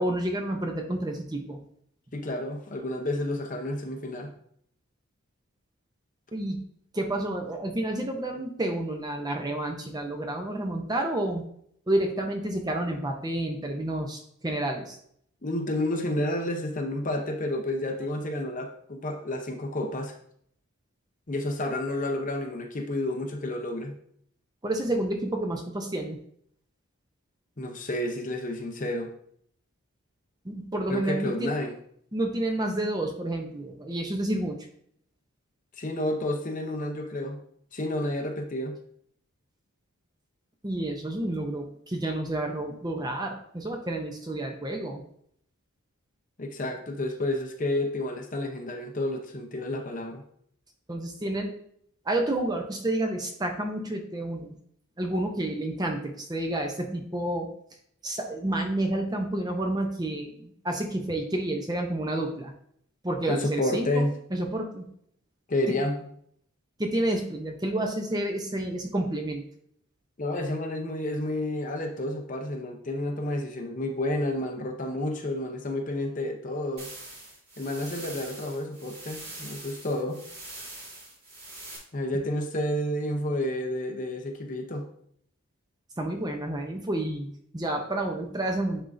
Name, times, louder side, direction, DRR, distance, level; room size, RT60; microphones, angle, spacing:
voice 1, 0.0-1.6 6.3-6.6 6.9-11.4 11.9-15.0 24.6-26.2 30.4-31.5 32.1-34.7 40.6-45.0 50.9-51.5 52.1-54.5 55.0-57.5 58.0-62.5 63.0-64.8 65.7-65.8 66.8-69.4 86.0-88.8, right 1 dB, 15° right, 3 dB, 0.6 m, -30 dB
voice 2, 2.1-4.3 15.4-20.1 21.3-24.0 27.6-29.1 30.9-31.7 35.7-37.4 37.7-38.8 46.4-50.2 63.3-64.1 65.5-66.0 70.2-76.9 77.6-80.2 81.9-84.9, left 1 dB, 35° left, 3 dB, 0.7 m, -30 dB
sound 1, 76.8-81.8, right 2 dB, 45° right, 2.3 m, -43 dB
10.0 x 3.6 x 2.6 m, 0.65 s
head